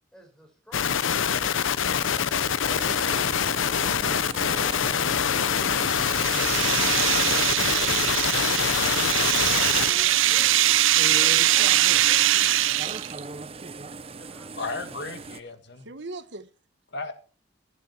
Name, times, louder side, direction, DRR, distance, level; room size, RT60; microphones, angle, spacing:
voice 1, 0.1-1.6 2.1-3.2 8.5-10.8 11.1-13.8 14.1-14.6 14.9-15.0, equal, 5° left, 5.4 m, -50 dB
sound 1, 0.7-9.9, left 7 dB, 80° left, 0.7 m, -25 dB
sound 2, 2.6-15.4, right 3 dB, 30° right, 0.8 m, -39 dB
sound 3, 5.4-13.2, right 13 dB, 85° right, 0.6 m, -22 dB
voice 2, 7.3-9.3 15.8-16.5, right 2 dB, 60° right, 1.4 m, -42 dB
voice 3, 14.6-15.9 16.9-17.1, left 3 dB, 60° left, 2.2 m, -34 dB
15.0 x 12.0 x 4.5 m
head